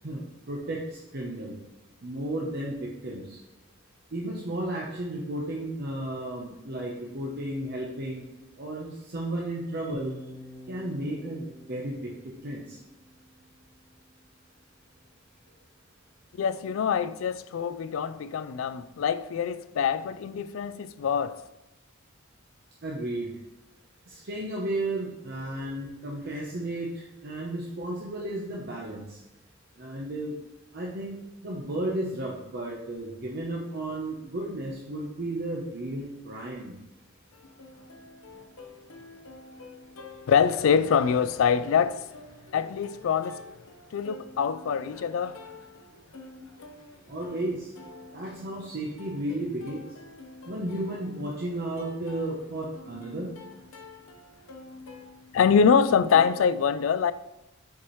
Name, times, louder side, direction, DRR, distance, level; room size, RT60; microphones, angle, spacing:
voice 1, 0.0-1.6 2.0-3.4 4.1-8.2 8.6-10.1 10.7-12.8 22.8-23.3 24.1-29.2 29.8-30.4 30.7-31.2 31.4-36.7 42.3-42.4 47.1-47.7 48.1-49.9 50.4-53.4, right 1 dB, 55° right, 0.9 m, -33 dB
sound 1, 9.9-14.0, left 1 dB, 20° left, 0.7 m, -47 dB
voice 2, 16.4-21.4 40.3-42.1 42.5-43.5 43.9-45.4 55.3-57.1, left 7 dB, 70° left, 0.3 m, -24 dB
Plucked string instrument, 37.3-56.3, left 3 dB, 90° left, 0.8 m, -48 dB
7.1 x 4.6 x 3.1 m
head